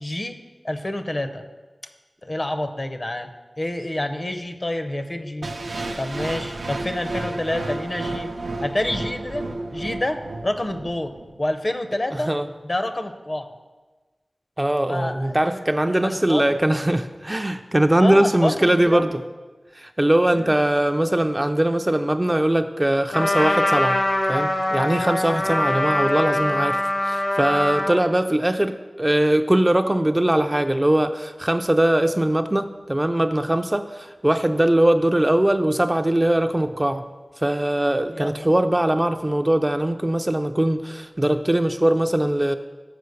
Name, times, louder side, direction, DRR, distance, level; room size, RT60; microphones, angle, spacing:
voice 1, 0.0-0.4 0.6-1.4 2.2-3.3 3.6-5.5 6.0-8.3 8.6-9.4 9.7-12.3 12.6-13.5 14.9-15.6 15.8-16.4 18.0-19.2 20.3-20.6 38.1-38.4, left 1 dB, 40° left, 7 dB, 0.6 m, -28 dB
sound 1, 5.4-11.4, right 2 dB, 80° right, 0.5 m, -32 dB
voice 2, 12.1-12.5 14.6-19.2 19.7-24.0 24.3-37.0 37.4-42.6, right 1 dB, 20° right, 7 dB, 0.3 m, -21 dB
Trumpet, 23.1-28.0, left 1 dB, 75° left, 1.0 m, -23 dB
6.7 x 5.0 x 6.4 m, 1.3 s
wide cardioid pair, 65°, 0 cm